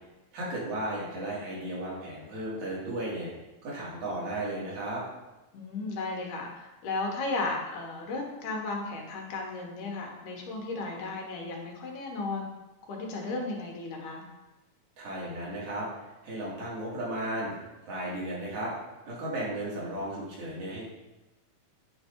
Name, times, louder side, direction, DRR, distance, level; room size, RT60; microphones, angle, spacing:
voice 1, 0.3-3.3 3.6-5.0 15.0-15.9 16.2-17.5 17.9-18.7 19.0-20.8, right 1 dB, 70° right, -6 dB, 3.3 m, -34 dB
voice 2, 5.5-12.5 12.9-14.2, left 3 dB, 85° left, 0 dB, 2.7 m, -34 dB
9.1 x 3.3 x 4.5 m, 1.0 s
omnidirectional pair, 3.5 m